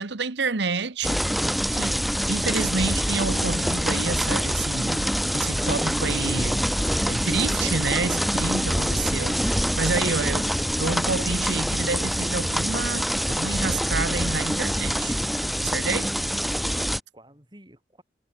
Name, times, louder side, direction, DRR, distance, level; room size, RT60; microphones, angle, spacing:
voice 1, 0.0-1.4 1.7-2.0 2.3-5.0 5.3-6.6 7.0-10.5 10.8-15.2 15.6-16.1, right 4 dB, 75° right, 1.2 m, -29 dB
sound 1, 1.0-17.0, equal, ahead, 0.5 m, -25 dB
voice 2, 16.2-18.0, right 1 dB, 25° right, 5.8 m, -51 dB
head